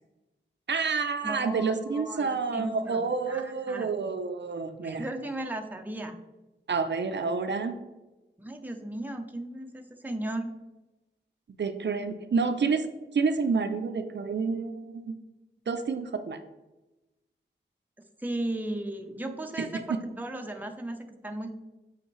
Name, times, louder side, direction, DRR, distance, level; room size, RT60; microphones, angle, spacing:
voice 1, 0.7-5.1 6.7-7.8 11.6-15.1 15.7-16.4 19.6-20.0, right 4 dB, 65° right, 7 dB, 0.5 m, -29 dB
voice 2, 1.2-3.9 4.8-6.2 8.4-10.5 18.2-21.5, right 1 dB, 10° right, 4 dB, 0.6 m, -36 dB
7.9 x 4.3 x 3.1 m, 1.0 s
wide cardioid pair, 100°, 20 cm